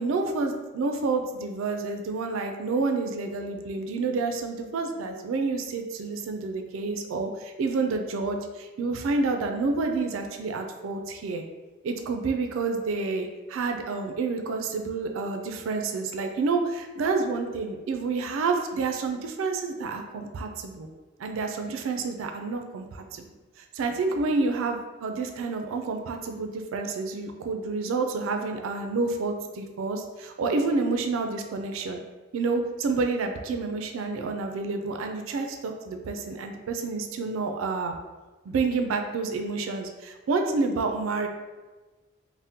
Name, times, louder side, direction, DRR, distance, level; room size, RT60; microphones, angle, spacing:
voice 1, 0.0-11.4 11.8-20.9 21.2-23.3 23.6-32.0 32.3-37.9 38.5-41.3, right 3 dB, 80° right, 5 dB, 0.3 m, -29 dB
3.5 x 2.1 x 2.7 m, 1.2 s
head